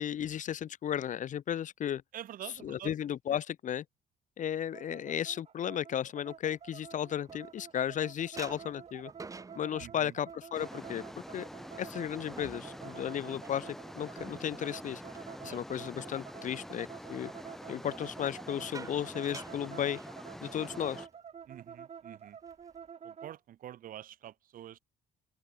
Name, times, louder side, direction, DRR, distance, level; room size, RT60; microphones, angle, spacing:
voice 1, 0.0-2.0 2.4-3.8 4.4-9.1 9.6-11.0 11.3-11.5 11.8-15.0 15.4-17.3 17.7-20.0 20.4-21.1, left 10 dB, 50° left, 1.2 m, -34 dB
voice 2, 2.1-2.9 9.8-10.1 15.4-15.6 21.5-22.4 23.0-24.8, right 11 dB, 55° right, 0.9 m, -46 dB
sound 1, 4.7-23.4, right 7 dB, 35° right, 1.3 m, -49 dB
sound 2, 6.5-7.9 8.4-16.2 16.5-16.9 18.0-20.6 20.9-21.1 21.4-21.7 22.2-22.9, right 4 dB, 20° right, 1.3 m, -51 dB
sound 3, 10.5-21.1, equal, ahead, 1.8 m, -47 dB
open air
cardioid pair, 110°, 17 cm